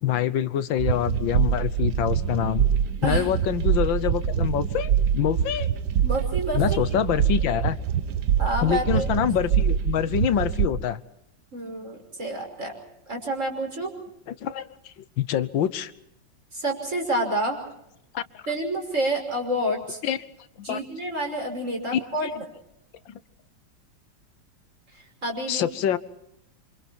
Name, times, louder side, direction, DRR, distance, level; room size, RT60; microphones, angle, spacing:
voice 1, 0.0-2.7 3.0-5.7 6.5-7.8 8.6-11.0 14.3-14.7 15.0-15.9 18.1-18.4 20.0-20.2 20.7-20.8 21.9-22.3 23.1-23.2 25.5-26.0, left 10 dB, 85° left, 14 dB, 1.7 m, -25 dB
sound 1, 0.8-10.7, right 9 dB, 65° right, 1.5 m, -24 dB
voice 2, 3.0-3.4 6.0-6.6 8.4-9.3 11.5-12.7 13.1-13.9 16.5-17.6 18.5-20.0 20.6-22.5 24.9-25.7, right 1 dB, 40° right, 2 dB, 6.2 m, -29 dB
28.0 x 26.0 x 4.5 m, 0.80 s
omnidirectional pair, 2.0 m